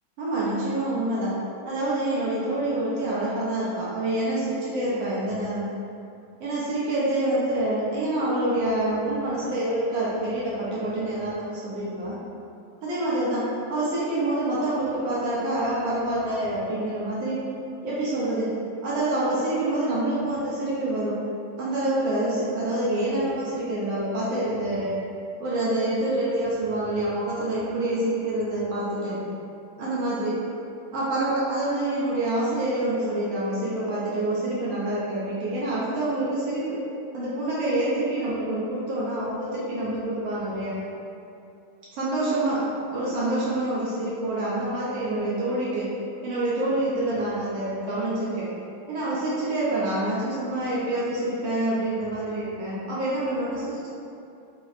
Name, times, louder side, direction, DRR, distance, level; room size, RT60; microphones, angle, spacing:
voice 1, 0.2-1.3 1.6-5.7 6.4-12.2 12.8-17.4 17.8-18.5 18.8-21.2 21.6-24.9 25.4-29.2 29.8-30.3 30.9-36.8 37.1-40.7 41.9-42.6 42.9-45.9 46.2-48.5 48.9-53.9, right 1 dB, 80° right, -8 dB, 1.3 m, -26 dB
4.4 x 2.0 x 2.3 m, 2.6 s
omnidirectional pair, 2.1 m